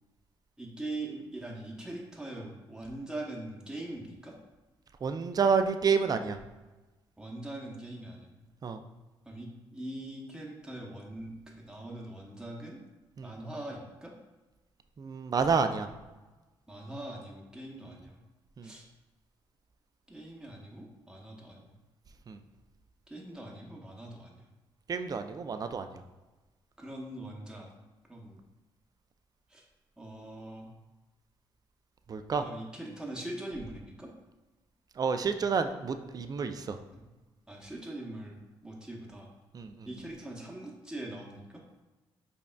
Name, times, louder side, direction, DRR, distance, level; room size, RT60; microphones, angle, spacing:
voice 1, 0.6-4.3 7.2-8.3 9.3-12.8 13.2-14.1 16.7-18.2 18.6-18.9 20.1-21.6 23.1-24.5 26.8-27.7 28.1-28.4 29.5-29.6 30.0-30.7 32.4-34.1 36.9-37.0 37.5-38.4 38.6-39.3 39.8-41.6, right 1 dB, 5° right, -2 dB, 0.8 m, -42 dB
voice 2, 5.0-6.4 8.6-8.8 13.2-13.3 15.0-15.9 18.6-18.7 22.3-22.4 24.9-26.0 32.1-32.4 35.0-36.8 39.5-39.9, right 5 dB, 35° right, 8 dB, 0.3 m, -29 dB
5.2 x 2.3 x 2.2 m, 1.2 s
hypercardioid pair, 50°, 11 cm